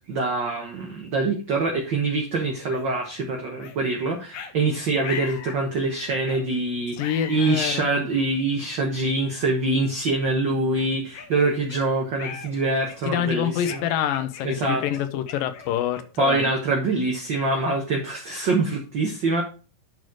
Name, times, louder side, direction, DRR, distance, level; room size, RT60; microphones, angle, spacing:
voice 1, 0.1-13.8 14.4-14.8 16.2-19.4, right 2 dB, 60° right, 1.2 m, -25 dB
sound 1, 2.7-2.9 3.6-3.8 4.3-4.5 5.0-5.6 6.2-6.5 7.0-7.9 8.6-8.7 9.4-9.6 10.1-10.2 10.8-11.8 12.2-12.5 12.9-13.2 13.7-16.2, left 7 dB, 65° left, 1.8 m, -39 dB
voice 2, 7.0-8.0 13.0-16.5, left 10 dB, 90° left, 2.6 m, -26 dB
11.0 x 4.4 x 4.6 m
omnidirectional pair, 3.9 m